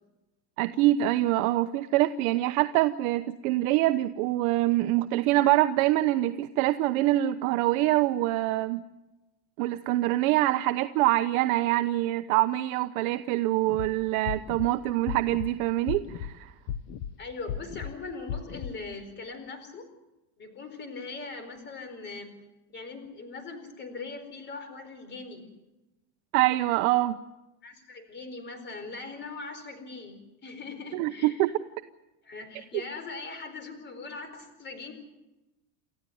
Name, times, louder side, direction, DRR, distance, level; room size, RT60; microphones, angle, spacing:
voice 1, 0.6-8.9 9.6-16.5 26.3-27.2 30.9-31.5, right 16 dB, 60° right, 9 dB, 1.0 m, -25 dB
sound 1, 13.7-13.9 14.3-14.7 15.1-15.5 15.9-16.3 16.7-17.1 17.5-17.9 18.3-18.7, left 9 dB, 55° left, 1.3 m, -34 dB
voice 2, 17.2-19.8 20.4-22.3 22.7-25.5 27.6-31.5 32.2-34.9, left 3 dB, 20° left, 9 dB, 4.4 m, -40 dB
29.0 x 14.5 x 9.3 m, 1.0 s
cardioid pair, 165°, 47 cm